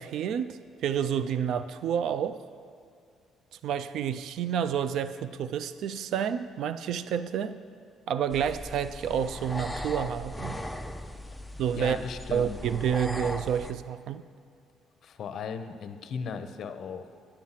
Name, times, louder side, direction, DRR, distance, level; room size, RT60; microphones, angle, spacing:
voice 1, 0.0-2.4 3.6-7.6 8.1-10.6 11.6-12.0 12.3-14.2, right 8 dB, 70° right, 12 dB, 0.3 m, -29 dB
sound 1, 8.3-13.7, left 1 dB, 5° left, 0.4 m, -38 dB
voice 2, 11.7-12.6 15.0-17.2, left 6 dB, 55° left, 9 dB, 0.6 m, -37 dB
10.0 x 7.4 x 5.7 m, 2.3 s
cardioid pair, 130°, 0 cm